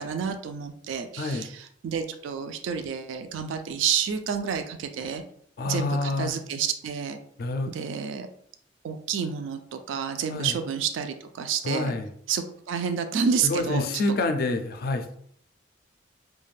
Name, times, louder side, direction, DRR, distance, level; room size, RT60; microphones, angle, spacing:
voice 1, 0.0-5.2 5.6-7.2 7.7-8.3 8.8-11.9 12.3-13.9, right 7 dB, 80° right, 7 dB, 0.3 m, -29 dB
voice 2, 1.2-1.5 5.6-6.3 7.4-7.7 10.3-10.5 11.6-12.1 13.4-15.2, left 2 dB, 50° left, 6 dB, 0.3 m, -27 dB
2.4 x 2.2 x 3.1 m, 0.65 s
head